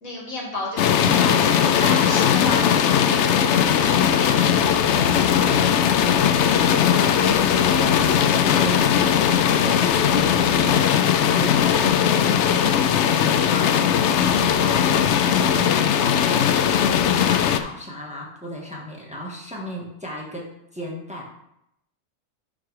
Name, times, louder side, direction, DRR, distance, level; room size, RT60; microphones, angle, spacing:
voice 1, 0.0-4.5, left 1 dB, 80° left, -2 dB, 2.5 m, -32 dB
sound 1, 0.8-17.6, left 8 dB, 65° left, 0.8 m, -19 dB
sound 2, 3.5-10.7, left 1 dB, 40° left, 1.8 m, -38 dB
voice 2, 5.3-9.0 9.6-16.5 16.8-20.5 20.7-21.3, equal, 5° right, -3 dB, 1.5 m, -35 dB
10.5 x 3.9 x 4.8 m, 0.80 s
omnidirectional pair, 1.4 m